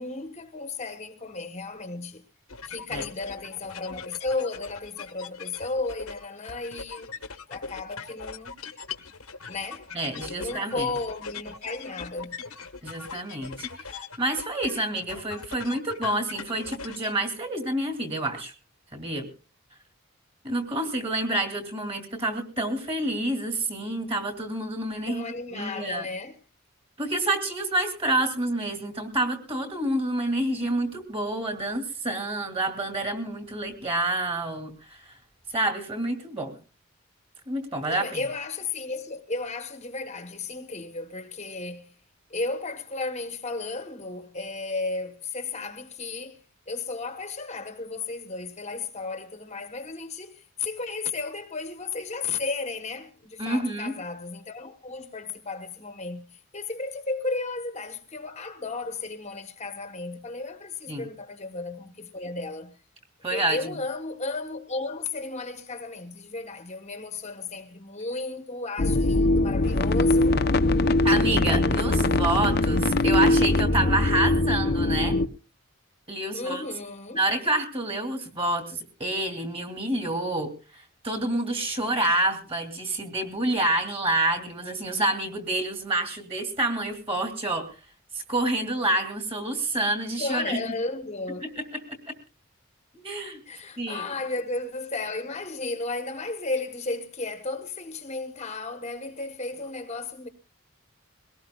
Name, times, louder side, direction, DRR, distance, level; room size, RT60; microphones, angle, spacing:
voice 1, 0.0-2.2 2.7-7.1 7.5-8.6 9.5-9.9 10.4-12.4 25.1-26.3 37.9-41.9 42.3-46.4 46.7-62.7 63.3-70.4 76.3-77.2 90.2-91.5 93.5-100.3, left 3 dB, 30° left, 1.0 m, -34 dB
sound 1, 2.5-17.1, left 5 dB, 80° left, 1.2 m, -40 dB
voice 2, 9.9-10.9 12.8-18.5 18.9-19.3 20.4-25.2 25.5-26.1 27.0-35.1 35.5-36.6 37.5-38.2 53.4-53.9 60.9-61.1 63.2-63.8 71.0-75.2 76.1-76.6 77.1-87.7 88.1-90.6 91.4-91.6 92.1-92.2 92.9-93.4 93.8-94.0, right 1 dB, 25° right, 2.5 m, -28 dB
sound 2, 68.8-75.3, left 2 dB, 45° left, 0.6 m, -22 dB
22.5 x 18.0 x 2.3 m
head